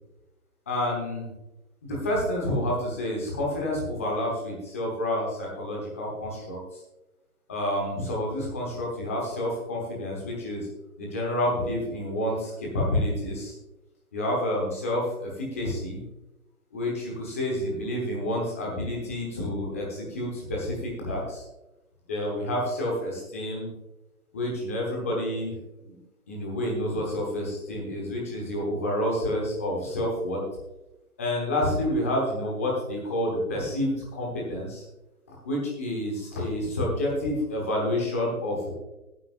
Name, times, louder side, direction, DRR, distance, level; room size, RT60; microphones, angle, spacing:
voice 1, 0.7-1.3 1.8-6.8 7.5-10.7 11.0-13.5 14.1-16.0 16.7-21.4 22.1-23.7 24.3-25.5 25.8-26.0 26.3-30.4 31.2-34.8 35.3-38.7, left 1 dB, 10° left, -2 dB, 1.1 m, -29 dB
16.5 x 9.6 x 2.5 m, 0.98 s
figure-of-eight pair, 160°, 44 cm